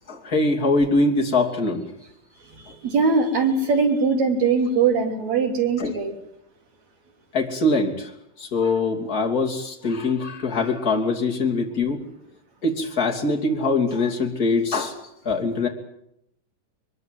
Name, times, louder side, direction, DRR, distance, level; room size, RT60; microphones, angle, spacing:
voice 1, 0.1-1.8 5.8-5.9 7.3-8.1 8.4-12.0 12.6-15.7, left 3 dB, 25° left, 0 dB, 3.2 m, -23 dB
voice 2, 2.8-6.2, right 4 dB, 55° right, 3 dB, 4.5 m, -21 dB
22.5 x 21.5 x 7.9 m, 0.77 s
omnidirectional pair, 3.8 m